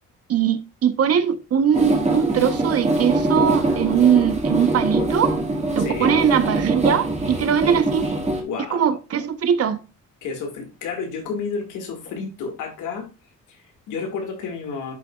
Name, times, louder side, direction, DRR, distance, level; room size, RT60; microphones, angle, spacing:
voice 1, 0.3-5.4 5.8-8.1 8.7-9.8, right 8 dB, 55° right, 0.9 m, -20 dB
sound 1, 1.7-8.4, right 2 dB, 20° right, 2.0 m, -23 dB
voice 2, 5.8-6.2 8.4-8.9 10.2-13.1 13.5-14.9, left 5 dB, 85° left, 2.1 m, -31 dB
10.5 x 4.1 x 2.3 m
cardioid pair, 90°, 30 cm